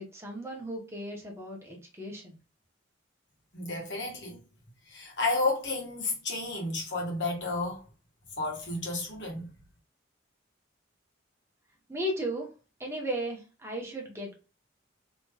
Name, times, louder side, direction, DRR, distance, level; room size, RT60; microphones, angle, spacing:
voice 1, 0.0-2.4 11.9-12.5 12.8-14.4, right 1 dB, 15° right, 0.9 m, -36 dB
voice 2, 3.5-4.4 4.9-7.8 8.4-9.5, left 2 dB, 60° left, 1.2 m, -31 dB
3.1 x 3.0 x 2.3 m
head